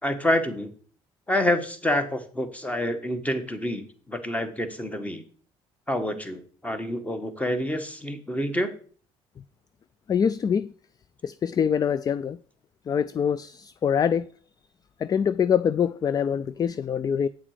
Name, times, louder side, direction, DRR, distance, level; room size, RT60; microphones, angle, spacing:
voice 1, 0.0-0.7 1.3-5.2 5.9-8.7, left 1 dB, 10° left, 1.7 m, -27 dB
voice 2, 10.1-10.7 11.2-12.4 12.9-14.3 15.0-17.3, left 7 dB, 35° left, 0.4 m, -24 dB
9.0 x 7.3 x 5.0 m
cardioid pair, 90°, 11 cm